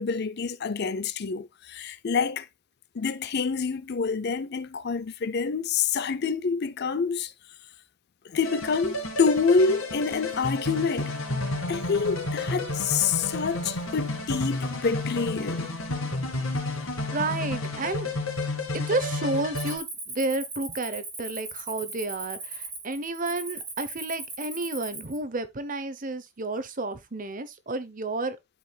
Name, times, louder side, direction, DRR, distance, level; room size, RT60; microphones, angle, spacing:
voice 1, 0.0-2.5 2.9-7.3 8.2-11.1 11.7-15.7, left 5 dB, 50° left, 0.5 m, -27 dB
sound 1, 8.4-19.8, left 2 dB, 75° left, 2.5 m, -31 dB
sound 2, 8.9-14.7, right 2 dB, 80° right, 1.8 m, -43 dB
voice 2, 17.1-18.1 18.7-28.4, right 2 dB, 40° right, 0.9 m, -31 dB
Cricket, 19.6-25.2, right 3 dB, 15° right, 1.9 m, -38 dB
12.5 x 4.9 x 2.3 m
head